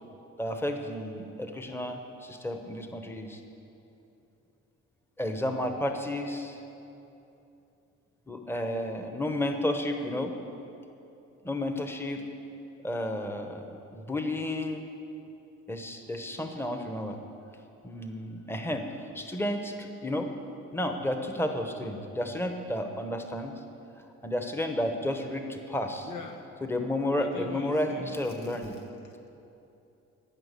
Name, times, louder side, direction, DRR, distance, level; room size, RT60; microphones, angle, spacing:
voice 1, 0.4-3.4 5.2-6.6 8.3-10.3 11.4-12.2 12.8-14.9 15.7-17.2 17.8-18.9 19.1-20.3 20.7-23.5 24.2-26.1 26.6-28.7, left 1 dB, 10° left, 5 dB, 1.0 m, -32 dB
voice 2, 26.0-26.5 27.2-28.6 29.0-29.3, left 5 dB, 80° left, 4 dB, 1.2 m, -43 dB
14.5 x 6.0 x 8.3 m, 2.8 s
cardioid pair, 90°, 30 cm